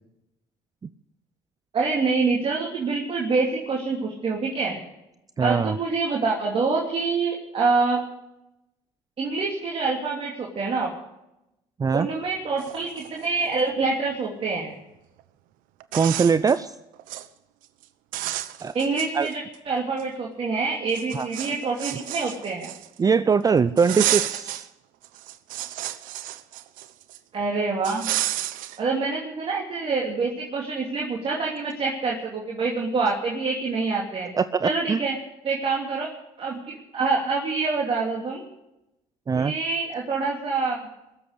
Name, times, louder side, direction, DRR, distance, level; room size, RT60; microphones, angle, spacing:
voice 1, 1.7-4.8 5.4-8.0 9.2-10.9 11.9-14.7 18.7-22.7 27.3-28.1 28.8-34.3 34.6-35.2 35.4-36.1 36.4-38.4 39.3-40.8, right 4 dB, 45° right, -2 dB, 2.9 m, -26 dB
voice 2, 5.4-5.8 11.8-12.1 15.9-16.7 18.6-18.7 19.1-19.3 21.1-21.3 23.0-24.7 34.3-35.0 39.3-39.5, right 5 dB, 25° right, 14 dB, 0.5 m, -21 dB
sound 1, 12.2-12.3 12.6-13.7 15.2-15.3 15.8-16.6 16.9-17.3 17.6-17.8 18.1-19.6 20.0-20.1 20.9-23.1 23.8-24.7 25.0-27.2 27.8-28.8, right 14 dB, 75° right, 0.9 m, -31 dB
21.5 x 7.7 x 8.2 m, 0.91 s
supercardioid pair, 75°, 14 cm